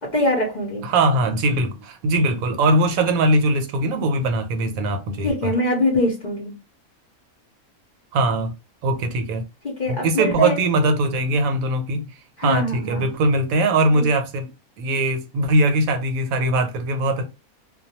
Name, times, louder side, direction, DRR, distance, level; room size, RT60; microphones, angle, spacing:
voice 1, 0.0-0.9 5.2-6.6 9.6-10.6 12.4-13.1 13.9-14.1, left 1 dB, 50° left, 0.5 m, -23 dB
voice 2, 0.8-5.5 8.1-8.5 8.8-9.4 9.9-12.0 12.4-14.5 14.8-17.3, right 2 dB, 80° right, 1.0 m, -21 dB
2.2 x 2.2 x 2.8 m
omnidirectional pair, 1.5 m